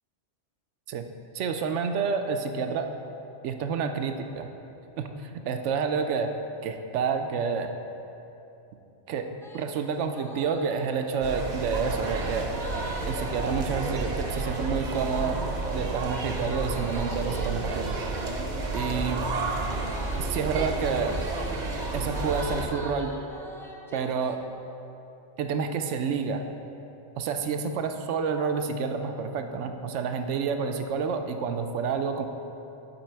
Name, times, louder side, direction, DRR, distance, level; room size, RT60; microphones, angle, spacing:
voice 1, 1.3-2.9 3.4-4.5 5.0-6.3 6.6-7.7 9.1-9.3 9.5-12.5 13.0-15.4 15.7-17.9 18.7-19.2 20.2-21.2 21.9-23.1 23.9-24.4 25.4-26.4 27.2-32.3, right 5 dB, 85° right, 7 dB, 0.9 m, -29 dB
sound 1, 9.4-9.6 10.0-24.3, equal, 5° left, 0.4 m, -43 dB
sound 2, 11.2-22.7, right 3 dB, 45° right, 0.8 m, -31 dB
10.5 x 4.6 x 4.4 m, 3.0 s
omnidirectional pair, 1.2 m